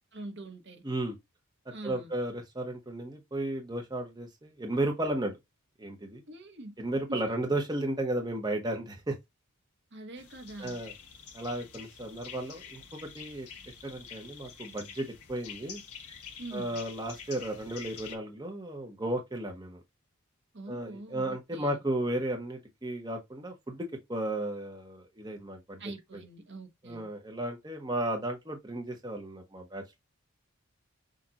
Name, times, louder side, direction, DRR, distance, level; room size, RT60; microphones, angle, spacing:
voice 1, 0.1-0.8 1.7-2.1 6.3-6.7 7.1-7.2 9.9-10.8 16.4-16.8 20.5-21.8 25.8-27.1, right 2 dB, 55° right, 1.2 m, -44 dB
voice 2, 0.8-1.2 1.8-5.4 5.8-6.2 6.8-9.2 10.6-10.9 11.3-13.5 13.8-15.8 16.5-19.8 20.7-25.8 26.8-29.8, right 1 dB, 20° right, 0.9 m, -34 dB
sound 1, 10.2-18.2, left 7 dB, 90° left, 1.2 m, -47 dB
6.4 x 2.5 x 2.9 m
head